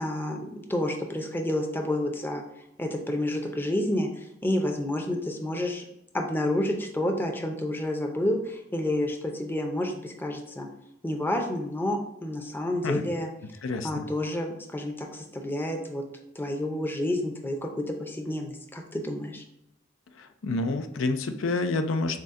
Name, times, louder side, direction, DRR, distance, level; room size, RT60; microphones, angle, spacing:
voice 1, 0.0-2.4 2.8-5.8 6.1-10.7 11.0-13.3 13.8-16.0 16.4-19.4, left 1 dB, 10° left, 2 dB, 0.5 m, -29 dB
voice 2, 20.2-22.2, left 3 dB, 90° left, 8 dB, 0.5 m, -28 dB
6.5 x 2.2 x 3.6 m, 0.85 s
head